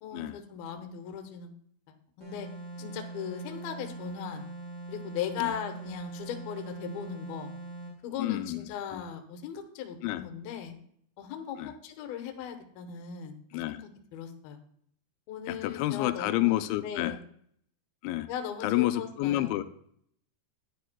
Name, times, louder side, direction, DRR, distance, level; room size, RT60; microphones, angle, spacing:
voice 1, 0.0-1.5 2.2-2.5 2.8-4.4 4.9-7.5 8.0-10.8 11.2-14.6 15.3-17.2 18.3-19.5, left 8 dB, 70° left, 5 dB, 2.4 m, -38 dB
sound 1, 2.2-8.0, right 3 dB, 30° right, 3.1 m, -42 dB
voice 2, 8.2-9.0 10.0-10.2 11.6-11.7 13.5-13.8 15.5-17.2 18.0-18.3 18.6-19.6, left 16 dB, 85° left, 10 dB, 2.9 m, -29 dB
11.5 x 10.5 x 2.2 m, 0.66 s
omnidirectional pair, 5.2 m